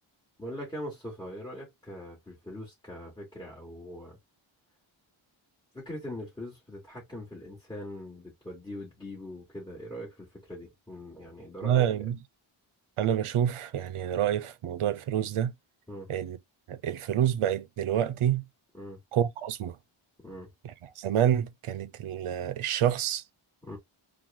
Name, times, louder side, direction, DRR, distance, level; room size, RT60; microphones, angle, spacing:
voice 1, 0.4-4.2 5.7-11.9 15.9-16.1 18.7-19.0 20.2-20.5 23.6-23.8, left 1 dB, 10° left, 2.5 m, -41 dB
voice 2, 11.6-12.2 13.0-15.5 16.1-16.4 16.7-18.4 19.1-19.8 21.0-23.2, right 10 dB, 90° right, 0.6 m, -27 dB
4.5 x 2.4 x 3.8 m
wide cardioid pair, 150°, 49 cm